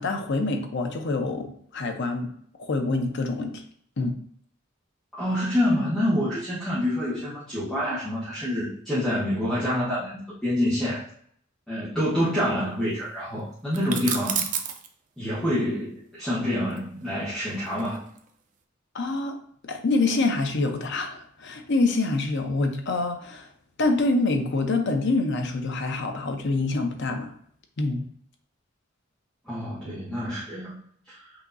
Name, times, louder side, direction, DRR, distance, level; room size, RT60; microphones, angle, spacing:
voice 1, 0.0-2.3 2.6-3.6 4.0-4.2 18.9-19.4 19.6-23.5 23.8-27.3 27.8-28.0, left 3 dB, 60° left, 5 dB, 0.7 m, -26 dB
voice 2, 5.2-11.0 11.7-14.4 15.2-18.0 29.5-30.8 31.1-31.3, left 1 dB, ahead, -11 dB, 1.1 m, -27 dB
sound 1, 13.7-14.9 16.7-18.3, right 7 dB, 40° right, 0.5 m, -30 dB
5.7 x 2.8 x 2.6 m, 0.64 s
head